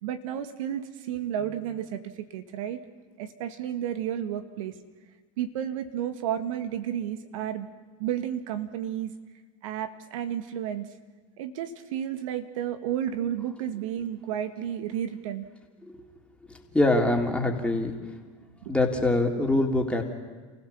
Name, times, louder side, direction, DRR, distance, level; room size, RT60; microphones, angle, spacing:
voice 1, 0.0-2.8 3.2-4.7 5.4-7.7 8.0-9.1 9.6-10.9 11.4-15.5, right 10 dB, 75° right, 9 dB, 1.8 m, -32 dB
voice 2, 16.7-17.9 18.7-20.0, left 2 dB, 5° left, 1 dB, 3.5 m, -24 dB
29.5 x 16.0 x 7.2 m, 1.4 s
hypercardioid pair, 90°, 17 cm